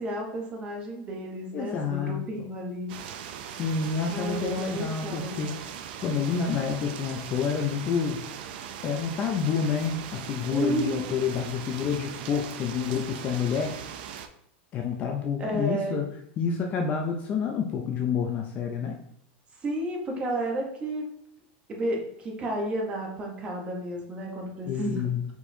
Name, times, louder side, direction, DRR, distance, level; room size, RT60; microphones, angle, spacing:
voice 1, 0.0-2.9 4.1-5.4 10.5-11.3 15.4-16.0 19.6-21.1 21.7-25.0, right 1 dB, 20° right, 0 dB, 0.9 m, -32 dB
voice 2, 1.5-2.2 3.5-5.5 6.0-8.2 8.8-13.9 14.7-16.1 16.4-19.0 24.7-25.3, left 6 dB, 25° left, 2 dB, 0.4 m, -28 dB
sound 1, 2.9-14.3, right 9 dB, 60° right, 0.4 m, -40 dB
4.5 x 4.2 x 2.7 m, 0.70 s
supercardioid pair, 170°, 6 cm